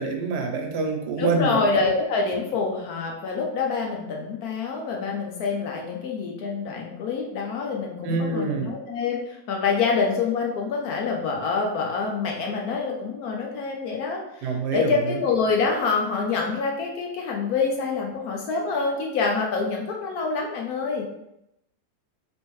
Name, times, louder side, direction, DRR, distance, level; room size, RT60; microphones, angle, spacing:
voice 1, 0.0-1.6 8.0-8.7 14.4-15.2, right 4 dB, 80° right, 3 dB, 1.2 m, -26 dB
voice 2, 1.2-21.1, left 4 dB, 70° left, 0 dB, 1.1 m, -26 dB
3.5 x 3.1 x 3.0 m, 0.82 s
omnidirectional pair, 1.8 m